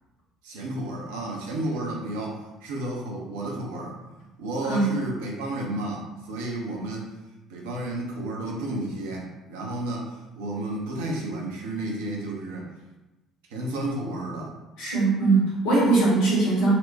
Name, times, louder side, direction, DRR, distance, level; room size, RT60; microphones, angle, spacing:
voice 1, 0.4-2.3 2.6-3.9 4.4-7.1 7.5-12.7 13.5-14.5, right 1 dB, 75° right, -2 dB, 0.7 m, -32 dB
voice 2, 4.6-4.9 14.8-16.7, right 3 dB, 70° left, -7 dB, 1.4 m, -21 dB
4.2 x 2.1 x 2.6 m, 1.0 s
figure-of-eight pair, 50°, 0 cm